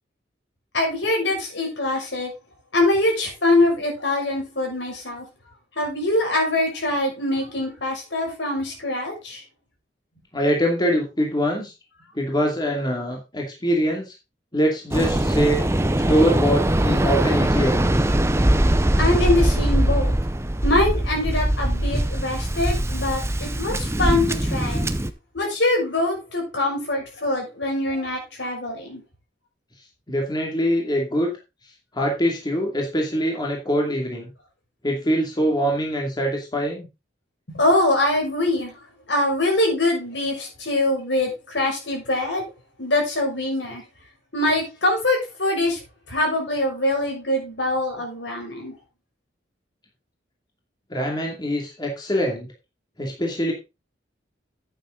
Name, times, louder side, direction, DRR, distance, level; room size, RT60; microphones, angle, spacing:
voice 1, 0.7-2.3 2.7-5.2 5.8-9.4 19.0-20.1 20.6-24.9 25.3-29.0 37.5-38.7 39.1-42.4 42.8-43.8 44.3-45.8 46.1-48.7, left 2 dB, 75° left, 1 dB, 6.2 m, -23 dB
voice 2, 10.3-11.7 12.1-14.1 14.5-15.6 16.1-17.7 30.1-31.3 31.9-34.3 34.8-36.9 50.9-52.5 53.0-53.5, equal, 25° left, 0 dB, 2.6 m, -23 dB
Waves surf, 14.9-25.1, right 1 dB, 15° right, 0.8 m, -21 dB
9.2 x 9.2 x 3.9 m, 0.27 s
head